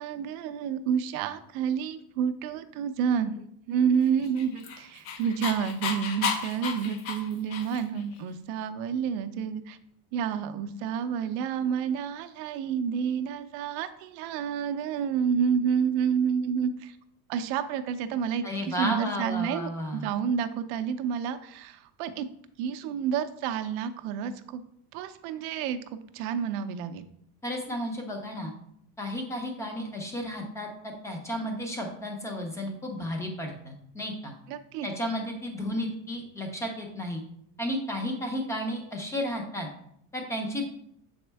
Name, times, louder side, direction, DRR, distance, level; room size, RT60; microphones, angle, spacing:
voice 1, 0.0-9.8 10.1-17.0 17.3-22.3 22.6-24.6 24.9-25.8 26.1-27.0 34.5-34.9, right 7 dB, 55° right, 8 dB, 0.6 m, -29 dB
Dog, 4.2-8.0, left 6 dB, 65° left, 1.0 m, -33 dB
voice 2, 18.4-20.1 27.4-28.5 29.0-34.3 34.8-37.2 37.6-39.7 40.1-40.7, equal, 5° left, 2 dB, 0.6 m, -33 dB
7.1 x 4.3 x 3.4 m, 0.70 s
cardioid pair, 170°, 44 cm